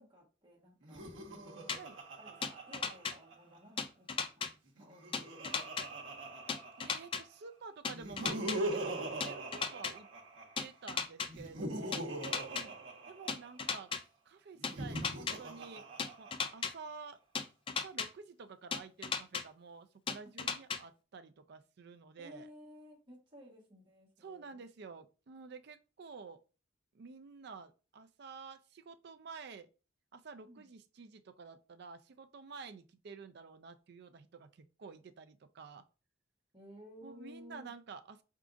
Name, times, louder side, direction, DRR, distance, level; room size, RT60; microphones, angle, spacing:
voice 1, 0.0-1.8 2.2-5.9 12.5-12.8 22.2-24.6 30.4-30.7 36.5-37.7, equal, 25° right, 1.4 m, -56 dB
Laughter, 0.8-3.6 4.7-7.3 7.9-10.6 11.3-13.7 14.6-16.7, right 1 dB, 80° right, 1.0 m, -42 dB
sound 1, 1.7-1.8 2.4-3.1 3.8-4.5 5.1-5.8 6.5-7.2 7.8-8.6 9.2-9.9 10.6-11.3 11.9-12.6 13.3-14.0 14.6-15.3 16.0-16.7 17.3-18.1 18.7-19.4 20.1-20.8, left 5 dB, 25° left, 0.4 m, -35 dB
voice 2, 6.8-10.1 10.6-12.1 13.1-13.9 14.3-15.9 16.2-17.2 17.7-22.5 24.2-26.4 26.9-29.7 30.1-35.8 37.0-38.2, right 5 dB, 55° right, 0.4 m, -50 dB
4.7 x 3.6 x 2.5 m
head